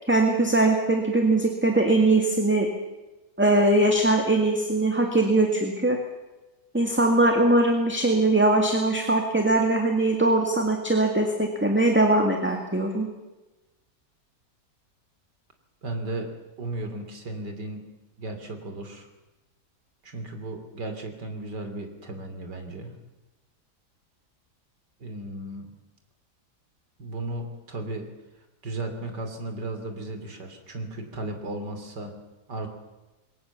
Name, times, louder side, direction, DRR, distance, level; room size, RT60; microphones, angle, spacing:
voice 1, 0.1-2.7 3.4-6.0 6.7-13.1, right 2 dB, 5° right, 3 dB, 1.9 m, -21 dB
voice 2, 15.8-16.3 16.6-17.8 18.2-19.1 20.0-22.9 25.0-25.7 27.0-28.1 28.6-32.1 32.5-32.7, right 2 dB, 80° right, 6 dB, 3.5 m, -35 dB
22.0 x 18.0 x 7.1 m, 1.1 s
omnidirectional pair, 1.8 m